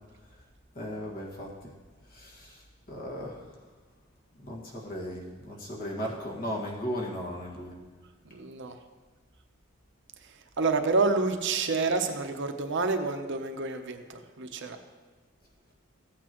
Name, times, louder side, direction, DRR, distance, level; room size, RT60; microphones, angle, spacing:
voice 1, 0.8-1.5 2.1-2.6 2.9-3.4 4.4-7.8, equal, 45° left, -3 dB, 1.8 m, -36 dB
voice 2, 8.3-8.8 10.6-14.8, right 3 dB, 60° right, 6 dB, 0.8 m, -28 dB
15.0 x 8.4 x 3.0 m, 1.3 s
head